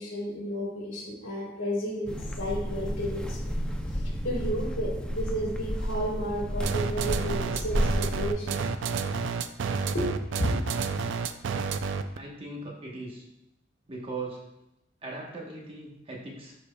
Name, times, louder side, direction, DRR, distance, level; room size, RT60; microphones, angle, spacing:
voice 1, 0.0-3.4 3.9-8.6 9.9-10.9, equal, 70° left, -5 dB, 2.4 m, -32 dB
sound 1, 2.1-8.3, equal, 5° left, 0.5 m, -31 dB
sound 2, 6.6-12.2, right 5 dB, 65° right, 0.4 m, -30 dB
voice 2, 12.1-13.3 13.9-14.4 15.0-16.5, right 2 dB, 30° right, -2 dB, 1.1 m, -39 dB
12.0 x 4.3 x 2.2 m, 0.88 s
head